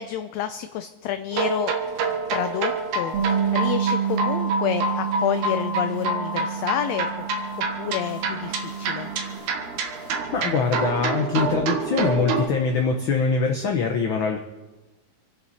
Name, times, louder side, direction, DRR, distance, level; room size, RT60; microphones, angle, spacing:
voice 1, 0.0-1.7 2.3-7.2 7.8-9.1, left 10 dB, 80° left, 10 dB, 1.6 m, -29 dB
sound 1, 1.3-12.5, right 3 dB, 80° right, 2.7 m, -27 dB
sound 2, 1.8-13.7, left 4 dB, 40° left, 2.7 m, -48 dB
Bass guitar, 3.1-9.4, right 8 dB, 45° right, 2.6 m, -29 dB
voice 2, 10.3-14.4, left 5 dB, 60° left, 3 dB, 1.3 m, -23 dB
26.5 x 10.5 x 4.2 m, 1.1 s
omnidirectional pair, 3.5 m